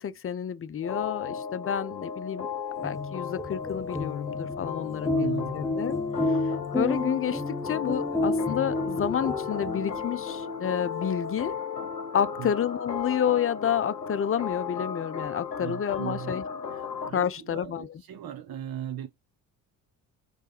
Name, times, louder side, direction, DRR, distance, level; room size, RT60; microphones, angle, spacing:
voice 1, 0.0-2.5 2.8-6.0 6.7-11.5 12.1-16.4 17.1-17.9, left 8 dB, 30° left, 0.8 m, -29 dB
sound 1, 0.8-17.1, left 6 dB, 90° left, 0.8 m, -35 dB
sound 2, 2.7-10.3, left 2 dB, 5° left, 1.6 m, -31 dB
voice 2, 5.1-5.7 12.4-12.5 15.6-16.3 16.7-19.1, right 10 dB, 45° right, 1.3 m, -38 dB
6.7 x 3.6 x 4.5 m
figure-of-eight pair, 45°, 48 cm